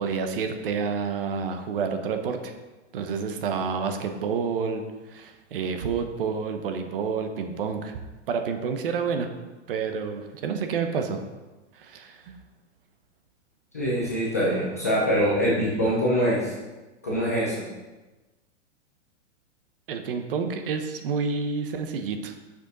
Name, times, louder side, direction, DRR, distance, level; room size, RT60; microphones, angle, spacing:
voice 1, 0.0-2.5 2.9-7.9 8.3-9.3 9.7-11.2 11.7-12.4 19.9-22.3, right 5 dB, 50° right, 6 dB, 0.9 m, -29 dB
voice 2, 13.7-16.5 17.0-17.6, equal, 15° left, -6 dB, 0.3 m, -24 dB
8.0 x 6.5 x 3.9 m, 1.2 s
hypercardioid pair, 165°, 37 cm